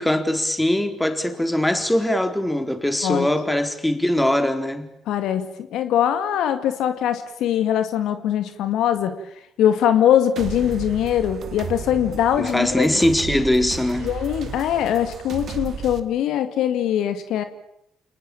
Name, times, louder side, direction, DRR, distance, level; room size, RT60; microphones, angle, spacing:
voice 1, 0.0-4.9 12.4-14.1, left 1 dB, 10° left, 4.1 m, -21 dB
voice 2, 5.1-9.2 9.6-12.9 14.0-17.4, left 10 dB, 65° left, 2.2 m, -22 dB
sound 1, 10.4-16.0, right 7 dB, 55° right, 2.4 m, -34 dB
29.5 x 20.0 x 8.8 m
hypercardioid pair, 50°, 0 cm